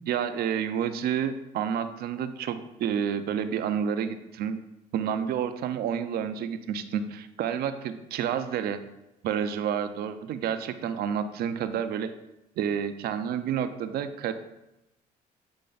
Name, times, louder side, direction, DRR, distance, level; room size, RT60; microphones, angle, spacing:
voice 1, 0.1-4.6 4.9-8.8 9.2-12.1 12.6-14.3, right 8 dB, 65° right, 10 dB, 0.5 m, -29 dB
7.8 x 3.3 x 3.9 m, 0.92 s
cardioid pair, 110°, 17 cm